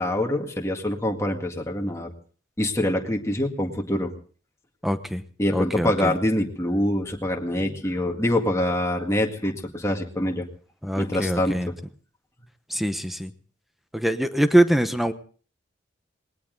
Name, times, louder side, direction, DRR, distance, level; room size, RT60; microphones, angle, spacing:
voice 1, 0.0-2.1 2.6-4.1 5.4-10.5 10.9-11.8, left 1 dB, 15° left, 2 dB, 1.9 m, -25 dB
voice 2, 4.8-5.2 5.5-6.1 10.8-11.7 12.7-13.3 13.9-15.1, right 1 dB, ahead, 10 dB, 1.0 m, -23 dB
19.5 x 18.5 x 3.9 m, 0.42 s
head